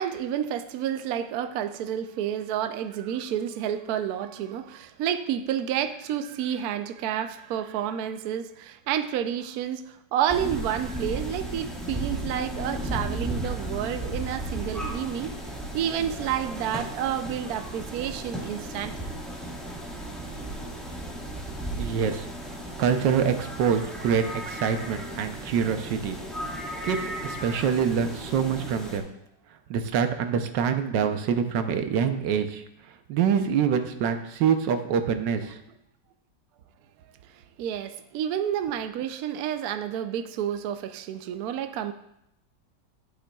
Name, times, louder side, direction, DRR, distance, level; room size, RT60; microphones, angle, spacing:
voice 1, 0.0-15.3 15.7-18.9 37.3-41.9, right 9 dB, 70° right, 9 dB, 1.0 m, -30 dB
sound 1, 10.3-29.0, right 1 dB, ahead, 1.4 m, -35 dB
voice 2, 21.7-22.2 22.8-26.2 26.8-27.0 27.2-29.1 29.7-32.6 33.1-35.6, right 7 dB, 85° right, 8 dB, 1.4 m, -25 dB
11.5 x 8.8 x 2.3 m, 0.79 s
omnidirectional pair, 1.9 m